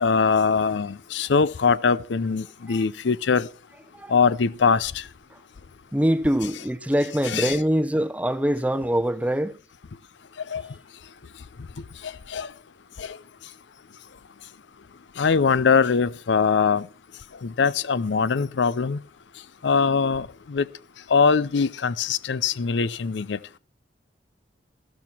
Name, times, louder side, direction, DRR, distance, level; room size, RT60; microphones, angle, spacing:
voice 1, 0.0-3.5 4.1-4.9 7.3-7.5 10.5-10.6 12.3-12.5 13.0-13.1 15.2-16.9 17.4-19.0 19.6-20.6 21.1-23.4, left 5 dB, 70° left, 0.5 m, -22 dB
voice 2, 5.9-9.6, equal, 10° right, 0.7 m, -24 dB
13.5 x 13.0 x 4.3 m
head